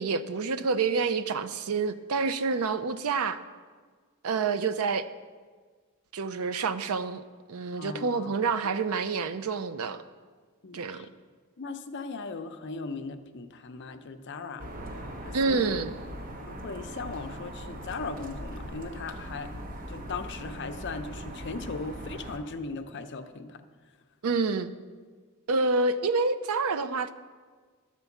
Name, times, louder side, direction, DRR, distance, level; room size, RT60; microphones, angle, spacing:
voice 1, 0.0-3.4 4.2-5.1 6.1-7.2 7.5-10.0 10.7-11.1 15.3-15.9 24.2-24.7 25.5-27.1, right 4 dB, 80° right, 12 dB, 0.5 m, -28 dB
voice 2, 7.8-8.3 10.6-11.1 11.6-14.7 15.2-15.7 16.5-19.5 19.9-23.6, left 4 dB, 55° left, 8 dB, 0.6 m, -38 dB
sound 1, 14.6-22.4, equal, 40° right, 1.0 m, -40 dB
12.0 x 4.5 x 7.1 m, 1.5 s
head